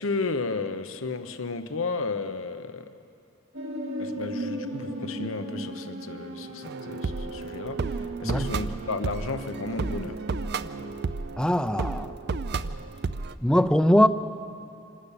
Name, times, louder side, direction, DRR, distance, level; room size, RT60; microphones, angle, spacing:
voice 1, 0.0-2.9 4.0-10.2, left 3 dB, 90° left, 10 dB, 1.0 m, -33 dB
sound 1, 3.5-10.9, equal, 80° right, 2.6 m, -37 dB
sound 2, 6.6-13.3, right 4 dB, 55° right, 0.5 m, -32 dB
voice 2, 11.4-12.1 13.4-14.1, equal, 5° left, 11 dB, 0.5 m, -21 dB
27.0 x 13.0 x 8.4 m, 2.8 s
head